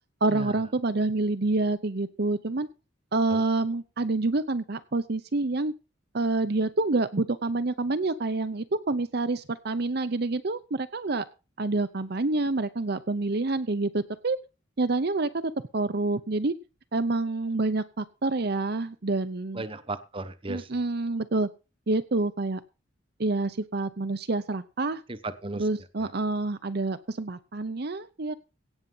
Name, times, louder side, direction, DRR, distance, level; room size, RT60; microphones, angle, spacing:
voice 1, 0.2-2.7 3.1-5.7 6.1-11.2 11.6-14.4 14.8-16.5 16.9-19.6 20.5-21.5 21.9-22.6 23.2-25.0 25.6-28.3, right 2 dB, 55° right, 11 dB, 0.7 m, -27 dB
voice 2, 19.5-20.7 25.1-25.7 26.0-26.1, right 2 dB, 25° right, 12 dB, 1.0 m, -35 dB
17.0 x 7.3 x 5.6 m, 0.31 s
head